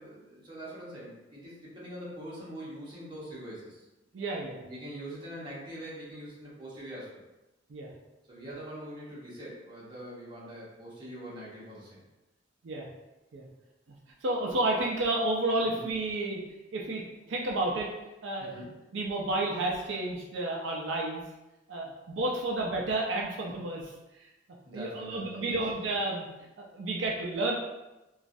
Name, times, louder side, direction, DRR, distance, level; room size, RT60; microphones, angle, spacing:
voice 1, 0.0-3.8 4.6-7.2 8.3-12.0 15.7-15.9 18.4-18.7 24.6-25.6, equal, 25° right, -7 dB, 1.0 m, -43 dB
voice 2, 4.1-4.6 7.7-7.9 12.6-12.9 13.3-13.4 14.2-16.4 16.7-17.0 17.3-17.9 18.2-18.6 18.9-21.2 21.7-23.9 24.7-26.3 26.6-27.6, right 2 dB, 90° right, -1 dB, 0.5 m, -31 dB
3.0 x 2.3 x 2.6 m, 1.0 s
head